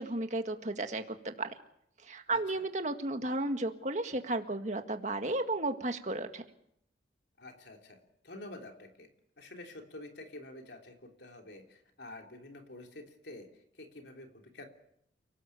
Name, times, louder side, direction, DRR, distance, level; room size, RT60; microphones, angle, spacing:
voice 1, 0.0-1.5 2.1-6.4, right 2 dB, 40° right, 6 dB, 1.8 m, -33 dB
voice 2, 2.3-2.6 7.4-9.1 9.4-13.5 13.8-14.7, left 2 dB, 70° left, 3 dB, 3.3 m, -48 dB
29.5 x 18.5 x 7.1 m, 0.75 s
head